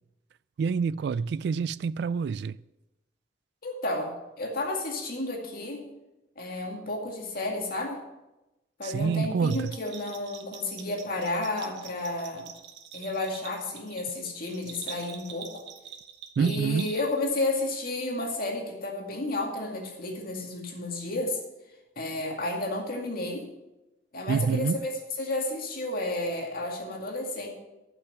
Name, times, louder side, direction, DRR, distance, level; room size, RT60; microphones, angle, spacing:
voice 1, 0.6-2.6 8.8-9.7 16.4-16.9 24.3-24.9, right 5 dB, 65° right, 0.3 m, -27 dB
voice 2, 3.6-5.9 6.4-8.0 8.8-12.5 12.9-15.6 16.4-21.4 22.0-23.5 24.1-24.9 25.2-27.5, left 2 dB, 55° left, 2.2 m, -32 dB
Bell, 9.4-17.3, right 8 dB, 85° right, 1.2 m, -45 dB
11.5 x 6.0 x 6.9 m
head